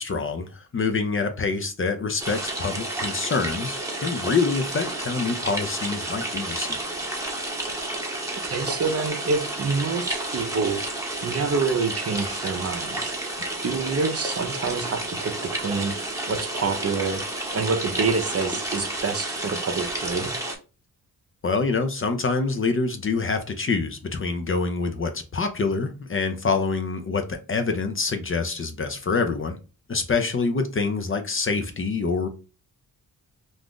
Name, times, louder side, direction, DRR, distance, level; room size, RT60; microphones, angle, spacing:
voice 1, 0.0-6.8 21.4-29.6 29.9-32.3, left 4 dB, 35° left, 0.5 m, -26 dB
sound 1, 2.2-20.5, right 2 dB, 10° right, 0.9 m, -31 dB
voice 2, 8.4-13.1 13.6-16.0 16.3-17.2 17.5-20.3, right 4 dB, 40° right, 0.6 m, -27 dB
2.5 x 2.4 x 3.5 m
cardioid pair, 65°, 37 cm